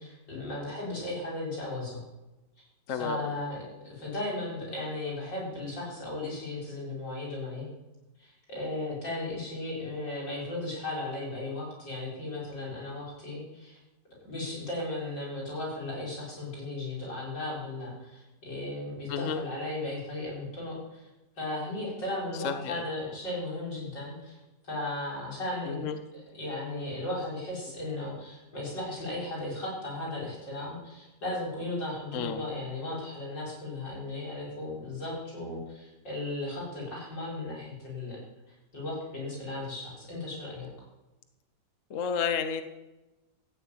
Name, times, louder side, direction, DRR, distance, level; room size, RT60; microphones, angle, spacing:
voice 1, 0.0-2.0 2.9-7.7 8.2-13.8 14.3-21.1 21.4-24.4 24.6-25.8 26.3-38.2 38.5-40.7, left 2 dB, 80° left, -5 dB, 6.9 m, -36 dB
voice 2, 2.9-3.4 19.1-19.4 22.3-22.8 25.6-26.0 32.1-32.4 41.9-42.6, left 6 dB, 50° left, 8 dB, 1.2 m, -31 dB
15.0 x 7.4 x 9.1 m, 1.1 s
omnidirectional pair, 1.9 m